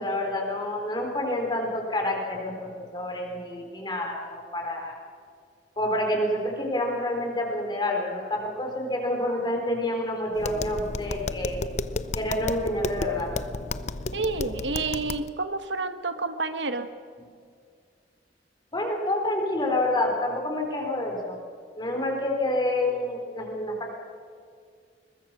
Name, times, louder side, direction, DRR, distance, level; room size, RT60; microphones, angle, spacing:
voice 1, 0.0-5.0 5.8-11.6 12.1-13.3 17.2-17.3 18.7-21.4 21.8-23.9, left 1 dB, 25° left, 1 dB, 4.1 m, -28 dB
Tap, 10.3-15.3, left 3 dB, 40° left, 0.6 m, -33 dB
voice 2, 14.1-16.9, right 3 dB, 90° right, 9 dB, 1.3 m, -29 dB
22.0 x 20.0 x 6.2 m, 2.2 s
head